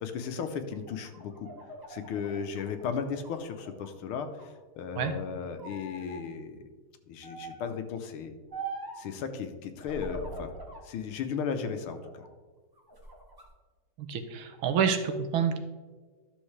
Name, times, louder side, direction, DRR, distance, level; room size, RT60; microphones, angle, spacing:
voice 1, 0.0-1.5 1.9-4.5 4.8-6.6 7.1-8.3 9.0-10.5 10.8-12.2, left 6 dB, 80° left, 8 dB, 1.6 m, -35 dB
sound 1, 0.7-3.9 4.3-5.2 5.6-6.2 7.2-7.7 8.5-9.1 9.8-10.9 11.3-12.3 12.8-13.5, right 2 dB, 15° right, 1.0 m, -43 dB
voice 2, 14.0-15.6, right 7 dB, 75° right, 8 dB, 1.5 m, -28 dB
12.0 x 6.3 x 3.2 m, 1.4 s
omnidirectional pair, 2.4 m